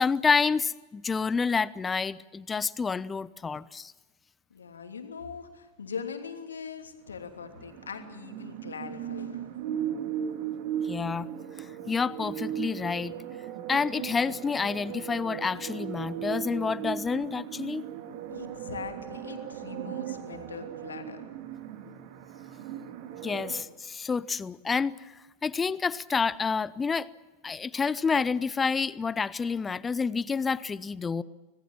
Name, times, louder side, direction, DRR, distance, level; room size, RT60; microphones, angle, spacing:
voice 1, 0.0-3.9 10.8-11.3 11.6-13.2 13.7-17.9 23.2-24.9 25.4-27.1 27.4-31.2, left 5 dB, 15° left, 20 dB, 0.7 m, -28 dB
voice 2, 4.5-9.6 18.3-21.2, left 6 dB, 70° left, 5 dB, 2.9 m, -41 dB
sound 1, 7.3-23.6, right 10 dB, 45° right, 2.3 m, -37 dB
26.0 x 19.5 x 7.4 m, 1.2 s
figure-of-eight pair, 90°, 0 cm